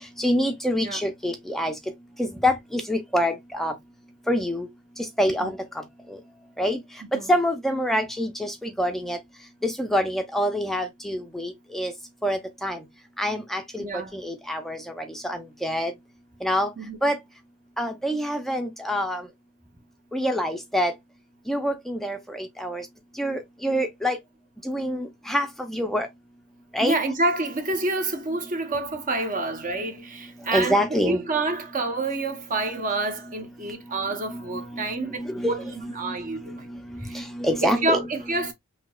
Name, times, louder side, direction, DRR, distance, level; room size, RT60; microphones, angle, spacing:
voice 1, 0.2-1.7 2.2-3.7 4.3-4.7 5.0-5.8 6.1-6.2 6.6-6.8 7.1-9.2 9.6-11.9 12.2-12.8 13.2-15.9 16.4-16.7 17.0-17.2 17.8-19.3 20.1-20.9 21.5-22.9 23.2-24.2 24.6-26.1 26.7-27.0 30.5-31.2 34.3-36.1 36.5-38.3, equal, ahead, 0.6 m, -26 dB
voice 2, 13.8-14.1 16.8-17.0 26.8-35.6 36.0-36.7 37.0-37.2 37.6-38.5, right 2 dB, 40° right, 0.9 m, -28 dB
5.9 x 2.8 x 2.3 m
head